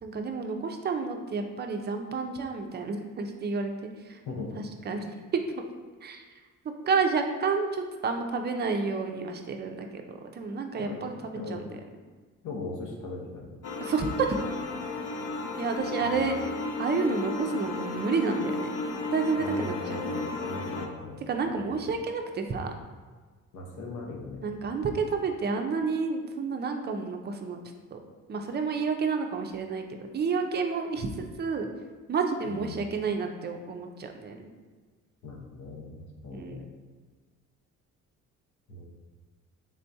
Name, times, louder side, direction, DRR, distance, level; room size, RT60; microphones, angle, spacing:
voice 1, 0.0-4.2 4.8-5.6 6.0-11.6 13.8-14.4 15.6-16.4 16.8-18.8 19.1-20.0 21.3-22.7 24.4-27.6 27.9-28.0 28.3-31.7 32.1-34.5 36.3-36.6, right 4 dB, 35° right, 4 dB, 0.5 m, -30 dB
voice 2, 12.4-13.6 16.0-16.2 19.4-21.2 21.5-21.6 23.5-24.5 32.5-32.8 35.2-35.9 36.2-36.6 38.7-38.9, left 3 dB, 75° left, -1 dB, 0.8 m, -39 dB
sound 1, 13.6-20.9, left 2 dB, 55° left, 0.5 m, -34 dB
3.7 x 3.3 x 2.7 m, 1.4 s
cardioid pair, 90°, 30 cm